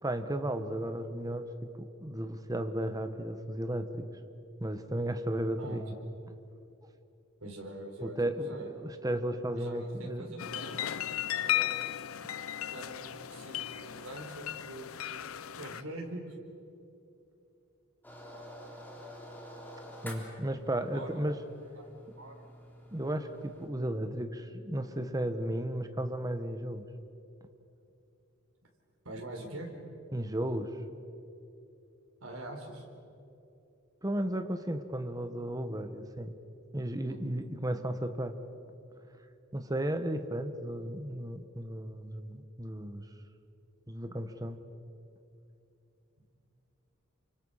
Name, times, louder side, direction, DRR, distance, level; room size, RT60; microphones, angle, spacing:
voice 1, 0.0-1.5 1.8-4.0 4.6-5.9 8.0-10.5 20.0-21.4 22.9-26.9 30.1-30.7 34.0-36.3 36.7-38.4 39.5-43.0 43.9-44.6, right 1 dB, 20° right, 8 dB, 1.3 m, -34 dB
voice 2, 7.4-8.7 9.5-11.0 11.3-12.0 12.6-14.9 15.5-16.3 20.4-20.5 20.9-21.2 21.8-21.9 22.2-22.4 29.0-29.7 32.2-32.8 37.1-37.2, right 1 dB, 85° right, 1 dB, 4.3 m, -44 dB
sound 1, 10.4-15.8, left 12 dB, 85° left, 0.6 m, -35 dB
sound 2, 18.0-23.7, equal, 10° left, 3.6 m, -49 dB
29.0 x 25.5 x 5.7 m, 2.7 s
head